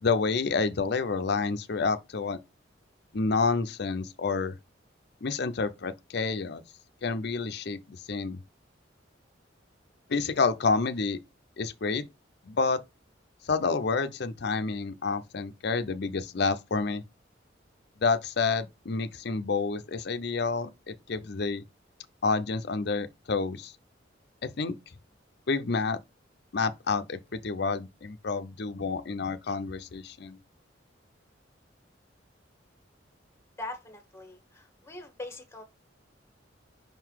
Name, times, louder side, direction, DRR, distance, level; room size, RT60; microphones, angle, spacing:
voice 1, 0.0-2.4 3.1-4.6 5.2-6.6 7.0-7.8 8.1-8.4 10.1-11.2 11.6-12.0 12.5-12.8 13.4-17.0 18.0-21.6 22.2-23.7 24.4-24.8 25.5-26.0 26.5-30.4, left 4 dB, 60° left, 0.6 m, -29 dB
voice 2, 33.6-35.6, left 2 dB, 15° left, 1.2 m, -42 dB
5.3 x 3.9 x 4.5 m
head